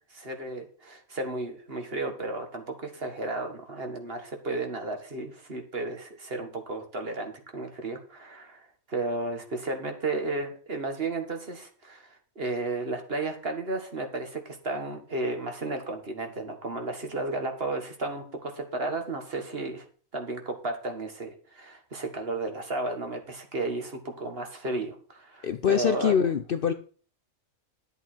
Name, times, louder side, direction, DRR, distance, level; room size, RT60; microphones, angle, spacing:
voice 1, 0.1-19.9 20.1-26.2, right 2 dB, 45° right, 5 dB, 1.9 m, -33 dB
voice 2, 25.4-26.7, left 8 dB, 55° left, 10 dB, 0.7 m, -24 dB
11.0 x 8.0 x 4.5 m, 0.42 s
omnidirectional pair, 1.4 m